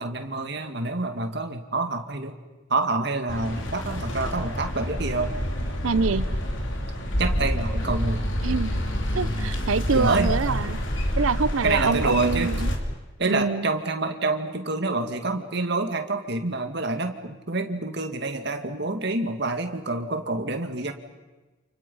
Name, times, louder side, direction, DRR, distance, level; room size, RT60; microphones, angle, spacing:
voice 1, 0.0-2.3 2.7-5.3 7.2-8.4 9.9-10.3 11.6-12.5 13.2-20.9, right 3 dB, 55° right, 6 dB, 2.1 m, -27 dB
sound 1, 3.3-12.8, equal, 65° left, 3.3 m, -28 dB
voice 2, 5.8-6.4 8.4-8.8 9.1-10.8 11.2-12.7 13.3-13.7, right 4 dB, 90° right, 16 dB, 0.7 m, -25 dB
29.5 x 28.5 x 5.6 m, 1.2 s
head